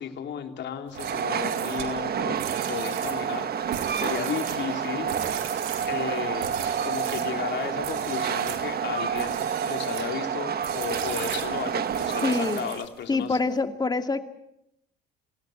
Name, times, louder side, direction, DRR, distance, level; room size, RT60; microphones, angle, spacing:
voice 1, 0.0-2.4 2.7-3.5 4.0-5.1 5.9-6.5 6.8-13.4, left 8 dB, 60° left, 5 dB, 3.3 m, -34 dB
Train, 0.9-12.9, right 8 dB, 50° right, 1.6 m, -29 dB
sound 1, 0.9-7.3 7.8-8.7 9.1-10.1 10.6-13.0, right 10 dB, 90° right, 3.8 m, -39 dB
voice 2, 12.2-12.6 13.1-14.2, left 3 dB, 20° left, 7 dB, 2.4 m, -25 dB
28.5 x 18.0 x 7.9 m, 0.78 s
supercardioid pair, 90°, 21 cm